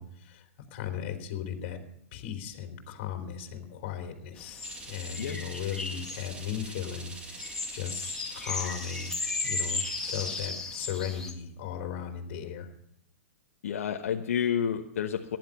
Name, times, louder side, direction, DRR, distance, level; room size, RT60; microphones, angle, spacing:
voice 1, 0.0-1.8 2.1-9.1 9.4-12.7, left 8 dB, 50° left, 4 dB, 3.3 m, -37 dB
sound 1, 4.4-11.3, left 3 dB, 10° left, 1.9 m, -36 dB
sound 2, 4.6-10.5, right 3 dB, 15° right, 1.8 m, -45 dB
voice 2, 13.6-15.4, left 8 dB, 75° left, 3 dB, 1.1 m, -30 dB
15.0 x 10.5 x 5.5 m, 0.73 s
hypercardioid pair, 130°, 8 cm